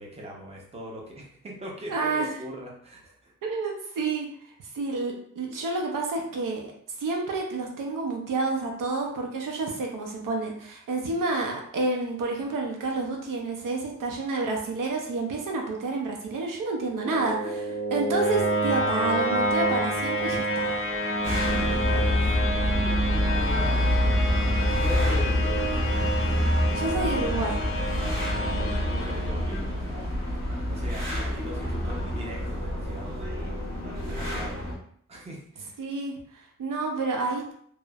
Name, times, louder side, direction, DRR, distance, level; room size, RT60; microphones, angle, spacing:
voice 1, 0.0-3.3 21.3-24.0 24.8-25.9 28.2-30.1 30.6-33.3 34.0-34.6 35.1-35.8, equal, 20° right, -2 dB, 0.6 m, -40 dB
voice 2, 1.9-2.3 3.4-4.3 4.7-6.7 7.0-17.4 17.9-20.8 26.7-27.6 35.8-37.5, right 3 dB, 75° right, 0 dB, 0.6 m, -29 dB
sound 1, 16.8-29.9, right 1 dB, 40° left, 0.5 m, -28 dB
sound 2, 21.2-34.7, left 1 dB, 60° right, 1.2 m, -27 dB
3.0 x 2.0 x 2.3 m, 0.62 s
wide cardioid pair, 120°, 33 cm